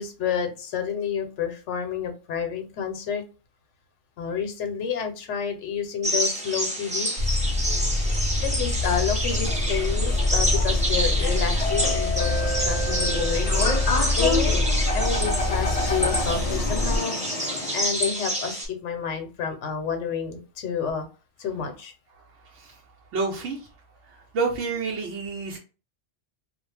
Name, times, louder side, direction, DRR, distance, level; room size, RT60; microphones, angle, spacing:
voice 1, 0.0-3.2 4.2-7.4 8.4-14.5 14.9-17.2 17.5-21.0 21.4-21.9, left 7 dB, 80° left, 6 dB, 1.0 m, -30 dB
sound 1, 6.0-18.7, equal, 10° right, 0.5 m, -29 dB
sound 2, 7.2-17.0, left 2 dB, 35° left, 0.7 m, -25 dB
sound 3, 7.5-17.8, left 2 dB, 65° left, 0.3 m, -30 dB
voice 2, 23.1-23.6 24.3-25.6, right 4 dB, 80° right, -3 dB, 1.0 m, -28 dB
2.4 x 2.1 x 3.2 m, 0.33 s
omnidirectional pair, 1.2 m